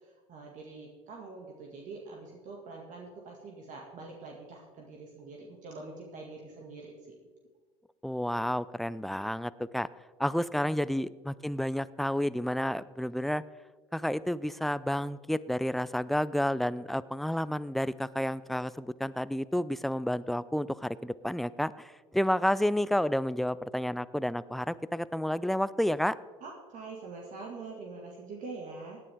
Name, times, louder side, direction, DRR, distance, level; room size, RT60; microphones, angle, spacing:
voice 1, 0.0-7.1 26.4-29.0, right 3 dB, 50° right, -1 dB, 2.2 m, -45 dB
voice 2, 8.0-9.9 10.2-13.4 13.9-26.2, equal, ahead, 17 dB, 0.4 m, -30 dB
17.5 x 10.0 x 3.6 m, 1.5 s
hypercardioid pair, 70°, 16 cm